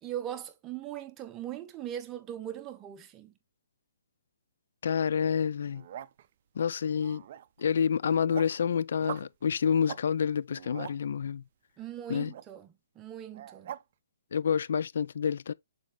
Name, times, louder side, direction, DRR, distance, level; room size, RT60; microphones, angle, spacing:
voice 1, 0.0-3.3 11.8-13.7, right 11 dB, 15° right, 0.9 m, -40 dB
voice 2, 4.8-5.8 6.6-7.2 7.6-11.4 12.1-12.3 14.3-15.5, left 7 dB, 60° left, 0.3 m, -28 dB
sound 1, 5.6-6.3 7.0-7.6 8.0-8.6 9.0-9.3 9.8-10.0 10.4-11.0 12.3-12.4 13.3-13.8, right 10 dB, 40° right, 0.5 m, -42 dB
7.1 x 5.1 x 3.1 m
hypercardioid pair, 165°, 0 cm